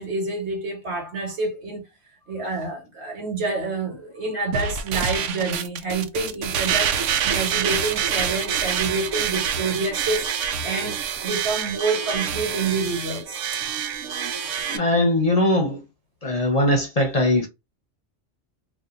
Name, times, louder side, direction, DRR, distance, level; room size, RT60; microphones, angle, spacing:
voice 1, 0.0-1.8 2.3-10.3 10.6-13.6, right 3 dB, 65° right, 1.5 m, -28 dB
sound 1, 4.5-14.8, right 8 dB, 85° right, 0.9 m, -26 dB
voice 2, 14.7-15.8 16.2-17.5, left 1 dB, 35° left, 0.8 m, -20 dB
2.8 x 2.5 x 3.6 m
omnidirectional pair, 1.2 m